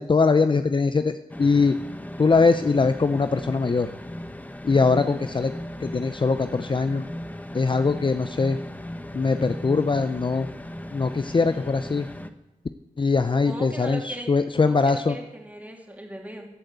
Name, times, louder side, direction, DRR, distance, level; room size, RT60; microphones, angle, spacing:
voice 1, 0.0-1.8 2.2-3.9 4.6-5.5 5.8-7.0 7.5-8.6 9.1-10.5 10.9-12.1 13.0-15.2, left 4 dB, 35° left, 9 dB, 0.6 m, -22 dB
sound 1, 1.3-12.3, left 1 dB, 10° left, 1.0 m, -37 dB
voice 2, 13.4-14.3 14.6-16.5, right 1 dB, 10° right, 0 dB, 3.3 m, -38 dB
15.0 x 8.6 x 8.1 m, 0.98 s
wide cardioid pair, 75°, 14 cm